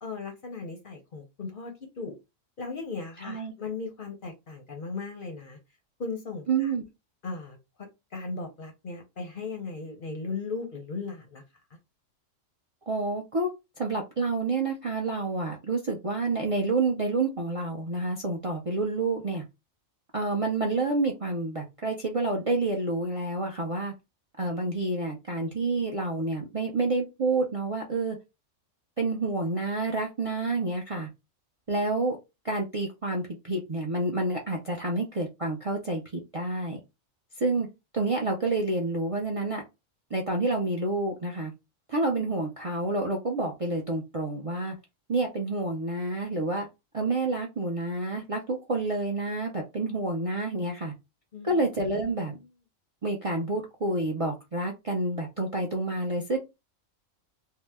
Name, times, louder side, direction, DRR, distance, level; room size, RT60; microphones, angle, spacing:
voice 1, 0.0-2.1 2.6-5.6 6.0-6.7 7.2-7.6 8.1-11.4 51.3-51.6, left 4 dB, 50° left, 3 dB, 0.7 m, -37 dB
voice 2, 3.2-3.5 6.5-6.8 12.9-13.5 13.8-19.4 20.1-23.9 24.4-28.2 29.0-31.1 31.7-32.2 32.4-36.8 37.4-37.7 37.9-39.6 40.1-41.5 41.9-44.7 45.1-46.7 46.9-50.9 51.4-52.4 53.0-56.4, right 2 dB, 40° right, 1 dB, 0.5 m, -28 dB
2.7 x 2.1 x 3.3 m, 0.24 s
omnidirectional pair, 1.3 m